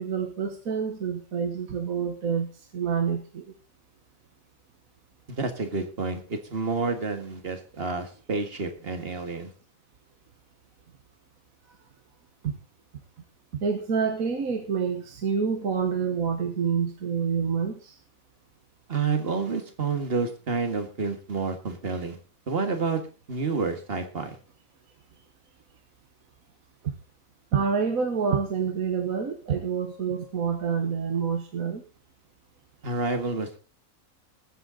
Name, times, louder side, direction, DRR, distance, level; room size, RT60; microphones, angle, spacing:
voice 1, 0.0-3.5 12.4-12.5 13.5-18.0 26.8-26.9 27.5-31.8, right 6 dB, 75° right, 5 dB, 1.7 m, -27 dB
voice 2, 5.3-9.5 18.9-22.2 22.5-23.0 23.3-24.4 32.8-33.6, right 4 dB, 45° right, 7 dB, 2.0 m, -29 dB
20.5 x 8.0 x 3.9 m, 0.36 s
omnidirectional pair, 1.5 m